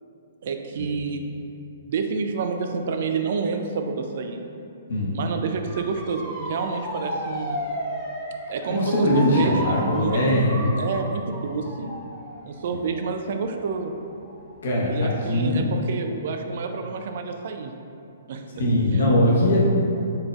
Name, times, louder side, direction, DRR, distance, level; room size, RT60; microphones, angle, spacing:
voice 1, 0.4-1.2 1.9-4.4 5.1-7.6 8.5-11.9 12.5-13.9 14.9-17.7 18.3-18.4 18.9-19.2, right 5 dB, 55° right, 5 dB, 0.3 m, -29 dB
Motor vehicle (road) / Siren, 5.7-14.6 15.0-15.5, equal, ahead, 0.7 m, -34 dB
voice 2, 8.7-10.6 12.7-12.8 14.6-15.6 18.6-19.6, left 1 dB, 65° left, -4 dB, 0.9 m, -21 dB
4.1 x 3.5 x 2.4 m, 2.6 s
figure-of-eight pair, 125°, 0 cm